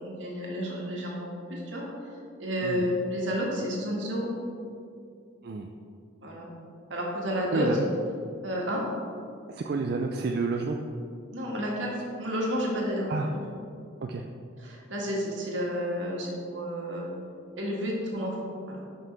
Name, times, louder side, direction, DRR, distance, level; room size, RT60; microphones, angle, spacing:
voice 1, 0.0-1.8 2.4-4.3 6.2-6.5 6.9-7.7 8.4-8.8 11.3-13.4 14.6-17.1 17.6-18.3 18.7-18.8, equal, 80° right, -3 dB, 1.6 m, -31 dB
voice 2, 7.5-7.8 9.5-10.8 13.1-13.3 14.0-14.2, right 3 dB, 55° right, 3 dB, 0.4 m, -29 dB
5.7 x 5.5 x 4.7 m, 2.4 s
head